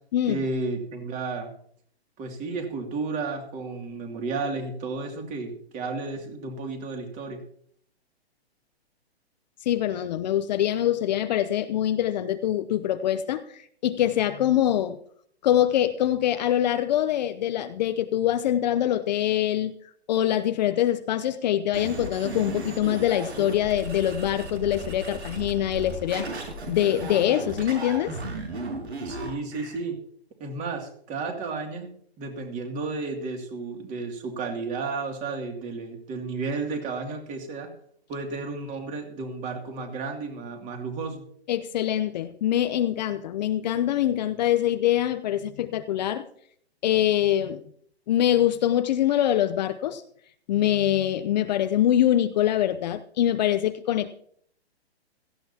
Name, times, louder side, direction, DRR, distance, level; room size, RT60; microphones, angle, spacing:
voice 1, 0.3-1.5 2.2-7.4 29.0-30.0 30.4-31.9 32.2-37.7 38.1-41.2, right 3 dB, 25° right, 3 dB, 2.6 m, -32 dB
voice 2, 9.7-15.0 15.4-19.7 20.1-26.3 26.7-28.2 41.5-46.2 46.8-47.6 48.1-50.0 50.5-54.2, left 11 dB, 40° left, 10 dB, 0.7 m, -24 dB
sound 1, 21.7-29.8, right 2 dB, 90° right, 5.7 m, -35 dB
17.0 x 14.5 x 2.9 m, 0.63 s
hypercardioid pair, 145°, 33 cm